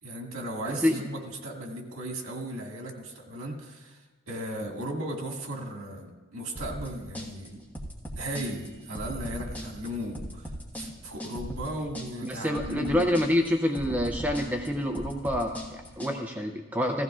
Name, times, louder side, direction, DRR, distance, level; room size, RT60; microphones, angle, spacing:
voice 1, 0.0-4.0 4.3-7.6 8.2-10.5 10.8-13.1, right 1 dB, 75° right, 1 dB, 1.9 m, -36 dB
voice 2, 0.6-1.0 12.2-17.0, left 1 dB, 10° right, 3 dB, 0.6 m, -27 dB
sound 1, 6.6-16.1, equal, 10° left, 1.4 m, -38 dB
16.0 x 15.0 x 2.4 m, 1.2 s
head